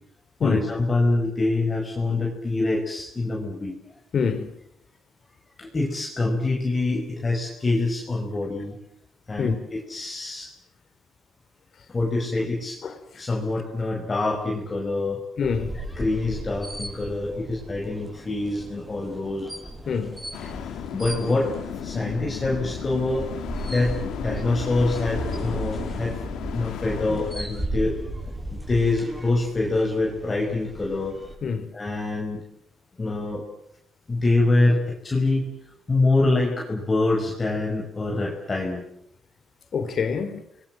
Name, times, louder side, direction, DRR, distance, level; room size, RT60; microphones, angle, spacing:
voice 1, 0.4-3.8 5.6-8.8 9.3-10.5 11.9-12.8 13.1-15.2 16.0-19.5 20.4-23.3 23.7-26.2 26.5-28.0 28.5-31.2 31.7-32.4 33.0-33.4 34.1-35.5 35.9-38.8, left 2 dB, 25° left, 5.2 m, -25 dB
voice 2, 4.1-4.5 9.4-9.6 12.8-12.9 15.4-15.7 19.9-20.1 31.4-31.7 39.7-40.4, left 6 dB, 55° left, 3.7 m, -25 dB
sound 1, 15.4-31.4, right 1 dB, 10° right, 7.8 m, -36 dB
sound 2, 20.3-27.3, left 9 dB, 85° left, 3.1 m, -34 dB
29.5 x 21.5 x 7.5 m
cardioid pair, 90°, 0 cm